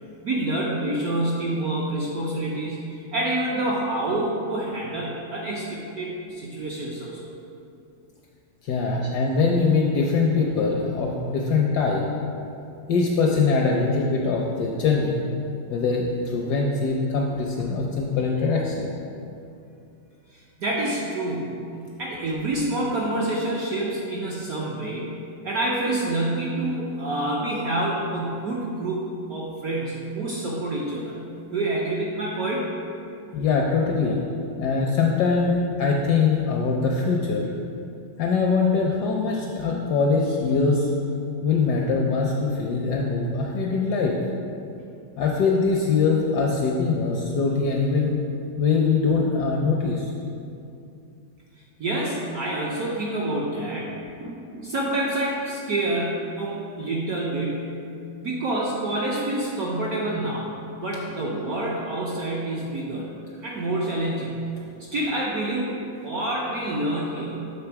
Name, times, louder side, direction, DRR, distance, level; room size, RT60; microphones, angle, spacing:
voice 1, 0.2-7.2 20.3-21.6 22.0-25.1 25.4-31.1 31.5-32.7 51.8-57.7 58.2-60.5 60.8-63.1 63.4-64.4 64.8-67.4, right 1 dB, 70° right, -4 dB, 0.9 m, -27 dB
voice 2, 8.6-12.1 12.9-15.3 15.7-18.9 33.3-34.2 34.6-37.5 38.2-40.9 41.4-44.1 45.2-48.2 48.6-50.1, left 4 dB, 75° left, -1 dB, 0.9 m, -22 dB
6.8 x 3.4 x 4.5 m, 2.6 s
omnidirectional pair, 2.2 m